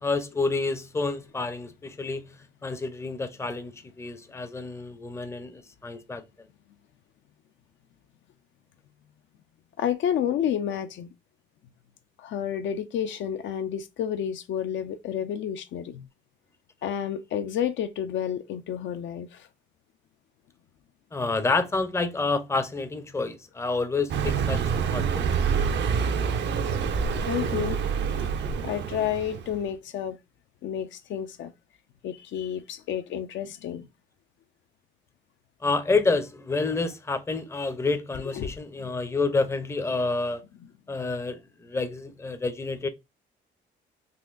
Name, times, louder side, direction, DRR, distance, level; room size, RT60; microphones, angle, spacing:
voice 1, 0.0-3.7 4.0-6.2 21.1-24.6 24.9-25.4 35.6-40.4 40.9-42.9, left 3 dB, 15° left, 0.5 m, -28 dB
voice 2, 9.8-11.1 12.2-16.1 16.8-19.5 27.3-27.8 28.1-28.4 28.6-30.2 30.6-31.5 32.0-33.9 38.3-38.5 38.8-38.9, left 9 dB, 70° left, 0.4 m, -30 dB
Car passing by, 24.1-29.6, right 6 dB, 60° right, 0.5 m, -27 dB
3.9 x 2.5 x 2.4 m
cardioid pair, 90°, 20 cm